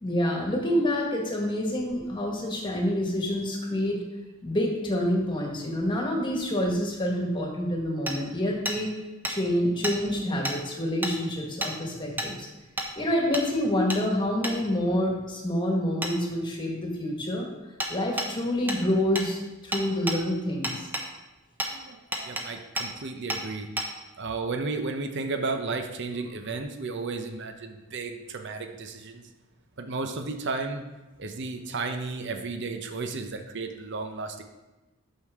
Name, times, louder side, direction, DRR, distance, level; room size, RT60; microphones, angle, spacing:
voice 1, 0.0-4.0 4.4-8.9 9.3-12.5 13.0-17.5 17.9-20.9, left 1 dB, 25° left, 0 dB, 1.6 m, -27 dB
Hammer, 8.1-8.2 8.7-8.8 9.2-9.4 9.8-10.0 10.4-10.6 11.0-11.1 11.6-11.7 12.2-12.3 12.8-12.9 13.3-13.5 13.9-14.0 14.4-14.6 16.0-16.1 17.8-17.9 18.2-18.3 18.7-18.8 19.2-19.3 19.7-20.2 20.6-21.1 21.6-21.7 22.1-22.5 22.8-22.9 23.3-23.4 23.8-23.9, right 1 dB, 10° right, 0.8 m, -30 dB
voice 2, 21.7-23.7 24.2-29.2 29.8-30.8 31.2-34.4, right 3 dB, 60° right, 6 dB, 0.7 m, -33 dB
8.8 x 6.5 x 3.6 m, 1.1 s
head